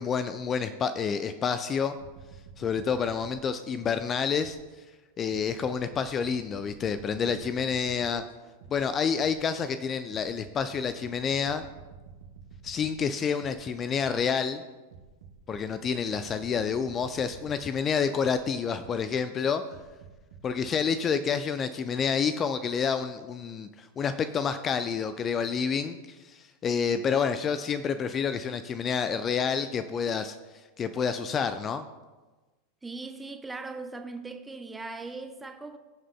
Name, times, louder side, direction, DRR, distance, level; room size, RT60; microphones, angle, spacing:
voice 1, 0.0-1.9 2.6-4.6 5.2-8.2 8.7-11.6 12.6-14.6 15.5-19.6 20.4-30.3 30.8-31.9, left 6 dB, 25° left, 0.5 m, -28 dB
sound 1, 2.0-4.8 5.3-9.6 10.1-14.4 14.9-19.2 19.7-20.8, right 6 dB, 55° right, 1.3 m, -50 dB
voice 2, 32.8-35.8, right 3 dB, 10° right, 0.8 m, -39 dB
22.0 x 7.4 x 2.2 m
figure-of-eight pair, 90°, 0 cm